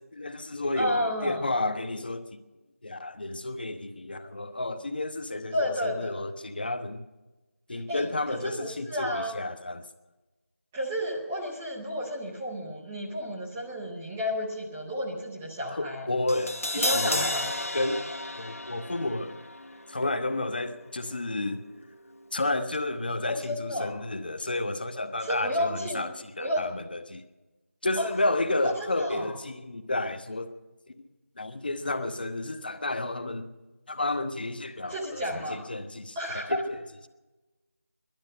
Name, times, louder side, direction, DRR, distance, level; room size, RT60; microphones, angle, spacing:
voice 1, 0.0-2.4 2.8-7.0 7.7-9.8 15.7-17.2 17.7-18.1 18.4-19.4 19.9-21.7 22.3-27.2 27.8-30.6 31.4-33.5 33.9-36.2 36.5-36.8, left 2 dB, 40° left, 0.9 m, -31 dB
voice 2, 0.7-1.4 5.5-6.2 7.7-9.3 10.7-16.1 16.8-17.5 23.3-23.9 25.2-26.0 26.4-26.7 28.0-28.1 28.6-29.3 34.9-35.6 36.1-36.6, equal, 5° right, 0.6 m, -32 dB
Crash cymbal, 16.3-22.4 22.7-22.8, left 1 dB, 70° left, 1.2 m, -34 dB
18.5 x 12.0 x 6.4 m
figure-of-eight pair, 165°, 8 cm